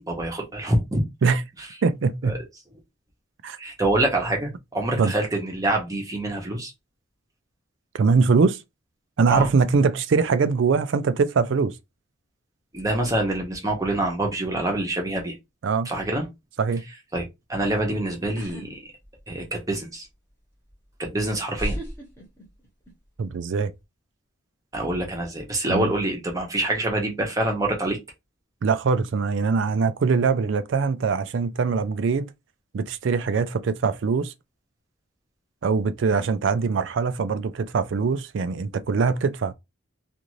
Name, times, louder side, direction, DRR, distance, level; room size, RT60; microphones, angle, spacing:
voice 1, 0.0-1.0 2.3-2.4 3.6-6.7 9.3-9.5 12.7-15.4 15.8-16.3 17.1-17.2 17.5-18.9 19.3-20.1 21.0-21.8 24.7-28.0, right 1 dB, 15° right, 0.8 m, -26 dB
voice 2, 1.8-2.4 3.4-3.6 5.0-5.1 7.9-8.6 9.2-11.8 15.6-15.9 16.6-16.8 23.2-23.7 25.7-25.9 28.6-32.3 32.7-34.3 35.6-39.5, right 5 dB, 60° right, 0.4 m, -22 dB
sound 1, 18.4-18.7 19.0-19.7 20.7-20.8 21.5-22.9 23.2-23.6, equal, 10° left, 1.0 m, -34 dB
2.5 x 2.5 x 3.0 m
head